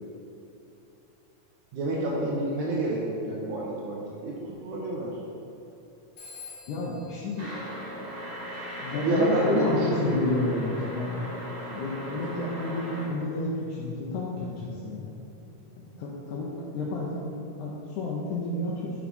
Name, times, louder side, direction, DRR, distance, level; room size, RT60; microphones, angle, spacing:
voice 1, 1.7-4.3 4.6-5.2 9.0-10.2, right 2 dB, 80° right, -4 dB, 2.2 m, -28 dB
Telephone, 6.2-8.7, left 4 dB, 65° left, 2.5 m, -49 dB
voice 2, 6.7-7.5 8.8-11.3 11.7-15.1 15.8-16.5 16.7-17.3 17.6-18.9, left 2 dB, 90° left, -5 dB, 2.2 m, -30 dB
sound 1, 7.4-13.0, equal, 55° right, 2.7 m, -38 dB
6.3 x 4.9 x 5.3 m, 2.9 s
omnidirectional pair, 3.4 m